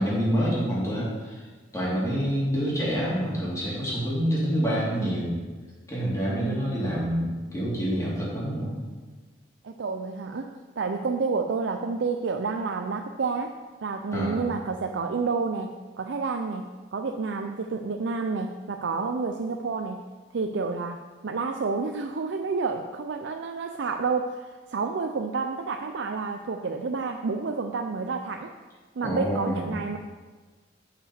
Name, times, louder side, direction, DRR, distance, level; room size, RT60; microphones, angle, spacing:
voice 1, 0.0-1.4 1.7-5.4 5.9-8.7 14.1-14.5 29.0-29.7, equal, 15° left, -6 dB, 2.6 m, -27 dB
voice 2, 6.3-6.8 9.6-10.5 10.8-13.5 13.8-16.6 16.9-20.0 20.3-21.0 21.2-28.5 29.0-30.0, right 4 dB, 80° right, 5 dB, 0.5 m, -29 dB
6.7 x 5.7 x 7.1 m, 1.4 s
head